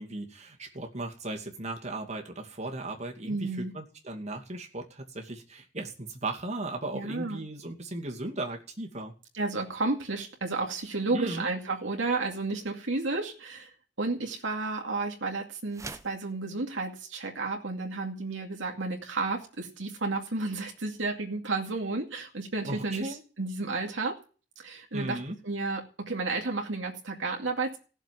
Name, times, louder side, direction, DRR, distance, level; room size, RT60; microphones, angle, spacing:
voice 1, 0.0-9.1 11.1-11.5 22.6-23.2 24.9-25.3, right 2 dB, 35° right, 2 dB, 2.5 m, -36 dB
voice 2, 3.3-3.7 6.9-7.4 9.3-13.7 14.0-24.2 24.6-25.2 25.4-27.8, right 3 dB, 90° right, 1 dB, 2.5 m, -32 dB
sound 1, 15.7-16.2, right 3 dB, 15° right, 0.9 m, -42 dB
16.5 x 7.1 x 9.5 m, 0.38 s
head